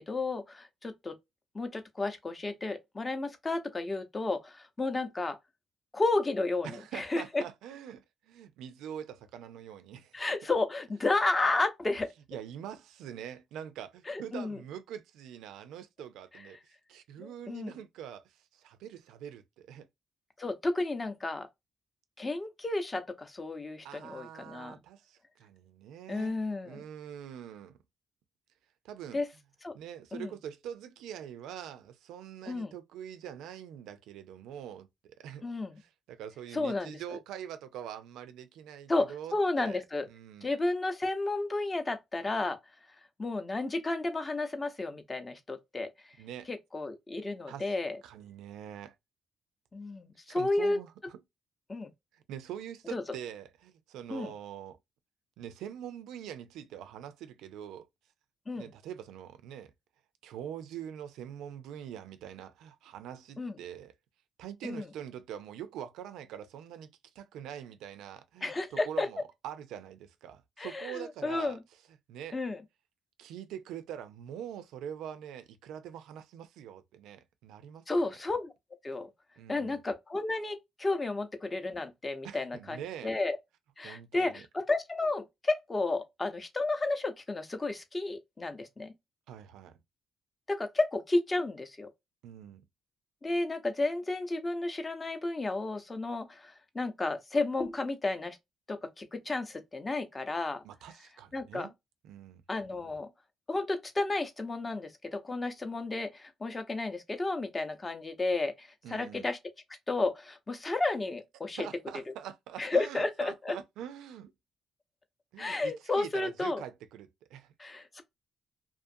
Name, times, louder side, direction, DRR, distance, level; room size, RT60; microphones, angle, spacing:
voice 1, 0.1-1.2 1.5-5.4 5.9-7.4 10.1-12.1 14.1-14.6 17.2-17.8 20.4-21.5 22.2-24.8 26.1-26.8 29.1-29.3 29.6-29.7 30.1-30.3 32.5-32.7 35.4-35.8 36.5-37.0 38.9-40.1 40.4-42.6 43.2-45.9 46.5-48.0 49.7-50.8 51.7-51.9 52.9-53.0 54.1-54.3 58.5-58.7 63.4-63.6 64.6-64.9 68.4-69.1 70.6-71.6 72.3-72.6 77.9-78.5 78.8-79.1 79.5-83.4 83.8-88.9 90.5-91.9 93.2-98.4 98.7-100.6 101.3-101.7 102.5-103.1 103.5-109.4 109.9-111.7 112.6-113.5 115.4-116.6 117.6-118.0, left 2 dB, 25° left, 0.6 m, -32 dB
voice 2, 6.6-10.2 12.3-19.9 23.8-26.4 26.6-27.8 28.8-29.2 29.7-35.4 35.8-39.8 40.1-40.5 46.2-46.5 47.5-47.7 48.0-48.9 50.3-51.2 52.1-54.8 55.4-57.9 58.6-59.7 60.2-63.9 64.4-71.6 72.1-72.4 73.2-77.8 79.4-79.8 82.2-83.1 83.8-84.5 89.3-89.8 92.2-92.7 100.6-101.7 102.0-102.4 108.8-109.3 111.6-114.3 115.3-117.5, right 9 dB, 90° right, 0.4 m, -44 dB
2.5 x 2.5 x 2.6 m
cardioid pair, 90°, 0 cm